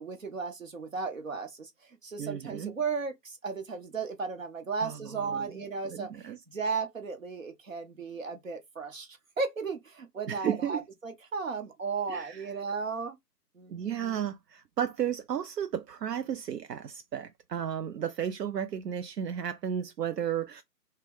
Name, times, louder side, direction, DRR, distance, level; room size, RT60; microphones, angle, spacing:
voice 1, 0.0-1.7 2.0-13.1 13.5-14.3, right 5 dB, 55° right, 0.9 m, -35 dB
voice 2, 2.2-2.7 4.8-5.0 5.3-5.5 5.8-6.4 10.3-10.8 12.1-12.5 13.7-20.6, right 9 dB, 75° right, 0.5 m, -33 dB
3.4 x 2.2 x 3.4 m
figure-of-eight pair, 175°, 49 cm